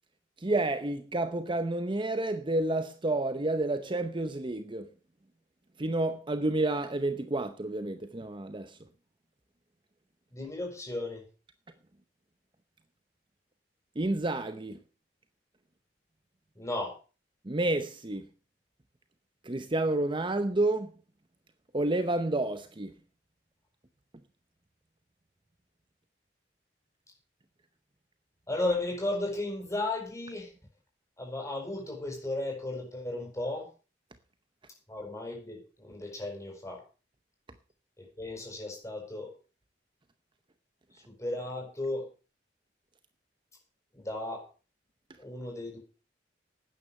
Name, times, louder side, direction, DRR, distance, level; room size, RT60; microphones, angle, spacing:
voice 1, 0.4-4.9 5.8-8.8 14.0-14.8 17.4-18.3 19.4-20.9 21.7-22.9, right 2 dB, 30° right, 0.8 m, -30 dB
voice 2, 10.3-11.2 16.5-16.9 28.5-30.5 31.2-33.7 34.9-36.8 38.0-39.3 41.1-42.1 43.9-44.5 45.2-45.8, left 2 dB, 15° left, 6.5 m, -35 dB
12.0 x 9.6 x 6.6 m
head